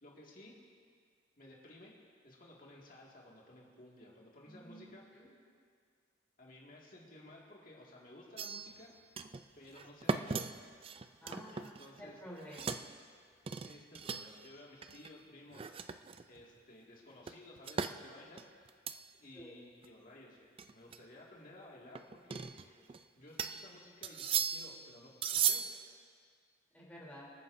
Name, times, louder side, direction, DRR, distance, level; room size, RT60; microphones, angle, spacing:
voice 1, 0.0-0.5 1.4-1.9 2.2-5.1 6.4-8.9 9.6-10.5 11.5-12.2 13.6-15.7 16.3-18.4 19.2-22.5 23.2-25.7, left 1 dB, 45° left, -3 dB, 2.1 m, -55 dB
voice 2, 4.5-5.3 11.2-12.8 19.3-19.5 26.7-27.2, equal, 10° left, -6 dB, 3.2 m, -51 dB
sound 1, 8.4-8.9 9.2-9.4 9.8-12.1 12.4-12.9 13.5-14.5 14.8-15.1 15.5-16.4 17.3-18.0 18.4-19.0 19.4-19.5 19.8-19.9 20.6-21.0 22.0-23.0 23.4-23.7 24.0-24.8 25.2-25.8, right 7 dB, 30° right, 0.3 m, -37 dB
25.5 x 9.5 x 2.7 m, 2.2 s
head